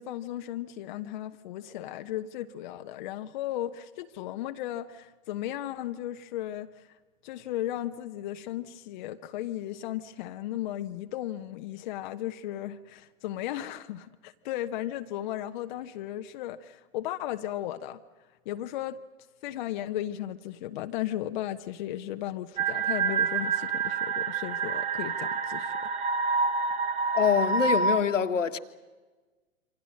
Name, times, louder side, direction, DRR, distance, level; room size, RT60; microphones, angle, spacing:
voice 1, 0.0-6.9 7.2-18.0 18.5-19.0 19.4-25.8, left 13 dB, 35° left, 1.0 m, -35 dB
sound 1, 22.6-28.0, right 5 dB, 15° right, 1.2 m, -28 dB
voice 2, 27.1-28.6, left 7 dB, 65° left, 1.6 m, -25 dB
28.0 x 25.5 x 6.4 m
figure-of-eight pair, 115°, 40 cm